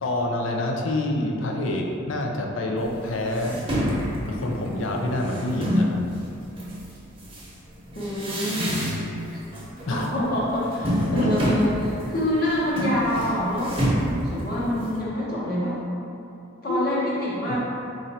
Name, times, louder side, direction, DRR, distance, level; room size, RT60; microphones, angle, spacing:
voice 1, 0.0-3.9 4.3-6.0 9.9-10.1 11.0-11.3 16.7-16.8, left 1 dB, 70° left, 1 dB, 0.5 m, -27 dB
sound 1, 2.8-2.9 3.3-6.0 6.6-9.3 9.5-10.0 10.3-15.0, equal, 25° right, 0.9 m, -27 dB
voice 2, 7.9-9.4 9.9-13.8 14.1-15.8 16.6-17.6, left 1 dB, 45° left, -8 dB, 1.1 m, -26 dB
4.3 x 2.6 x 4.1 m, 2.7 s
head